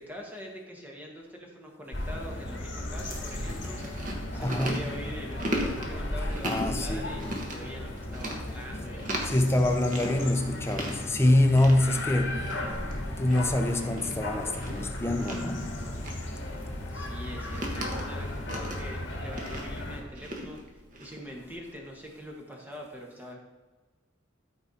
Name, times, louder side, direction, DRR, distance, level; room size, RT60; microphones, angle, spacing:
voice 1, 0.0-10.3 16.9-23.4, equal, 10° right, 1.4 m, -44 dB
sound 1, 1.9-20.0, left 1 dB, 65° left, 1.9 m, -36 dB
sound 2, 2.8-17.1, left 1 dB, 50° left, 1.8 m, -52 dB
Chewing mastication, 2.9-21.9, right 1 dB, 40° right, 1.4 m, -39 dB
voice 2, 4.4-4.8 6.4-7.1 9.3-12.4 13.2-15.6, left 1 dB, 15° left, 0.7 m, -25 dB
13.5 x 4.7 x 4.2 m
head